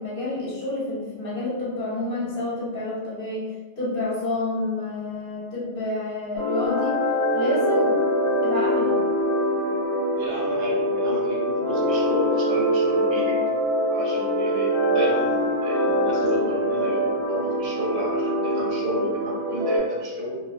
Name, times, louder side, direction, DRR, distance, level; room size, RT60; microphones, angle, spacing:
voice 1, 0.0-3.4 3.8-7.0 7.3-8.0 8.4-9.0, left 2 dB, 55° left, -6 dB, 0.8 m, -29 dB
sound 1, 6.4-19.8, equal, 25° left, 1.0 m, -23 dB
voice 2, 10.1-13.4 13.9-20.4, right 1 dB, 70° right, -3 dB, 0.9 m, -32 dB
2.3 x 2.2 x 2.4 m, 1.4 s
omnidirectional pair, 1.2 m